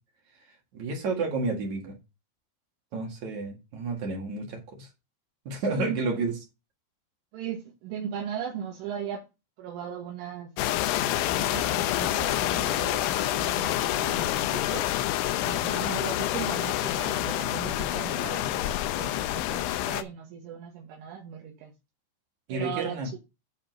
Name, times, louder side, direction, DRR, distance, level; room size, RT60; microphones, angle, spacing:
voice 1, 0.7-2.0 2.9-4.9 5.5-6.4 22.5-23.2, right 3 dB, 50° right, 2.4 m, -31 dB
voice 2, 5.7-6.2 7.3-9.2 9.6-10.5 11.0-14.9 15.4-18.7 18.9-21.7 22.5-23.2, right 9 dB, 75° right, 3.8 m, -38 dB
sound 1, 10.6-20.0, left 14 dB, 80° left, 2.9 m, -27 dB
10.5 x 4.3 x 5.3 m
omnidirectional pair, 5.9 m